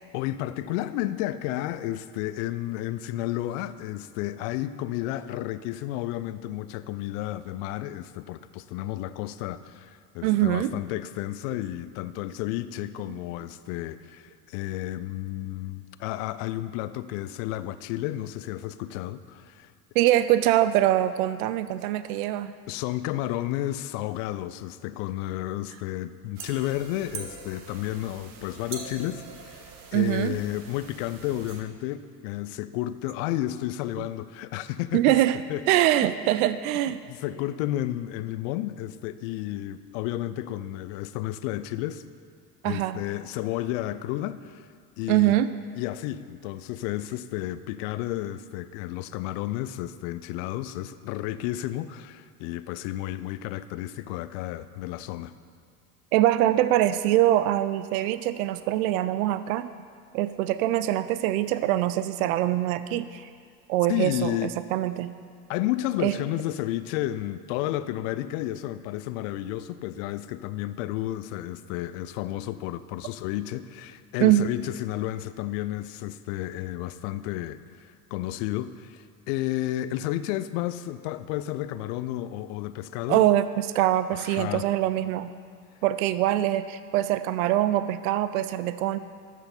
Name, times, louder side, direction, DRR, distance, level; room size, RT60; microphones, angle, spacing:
voice 1, 0.1-19.7 22.7-35.2 35.5-35.6 36.9-42.0 42.6-44.7 45.0-45.3 45.8-55.3 63.9-64.5 65.5-83.3 84.1-84.6, left 14 dB, 55° left, 14 dB, 0.5 m, -32 dB
voice 2, 10.2-10.7 19.9-22.5 29.9-30.4 34.9-35.4 35.7-37.0 42.6-43.0 45.1-45.5 56.1-59.7 60.1-63.3 63.7-65.1 66.0-66.2 74.2-74.4 83.1-85.3 85.8-89.0, right 13 dB, 65° right, 14 dB, 0.5 m, -23 dB
sound 1, 26.4-31.6, right 5 dB, 45° right, 1.4 m, -43 dB
13.0 x 6.2 x 4.3 m, 2.1 s
figure-of-eight pair, 70°, 48 cm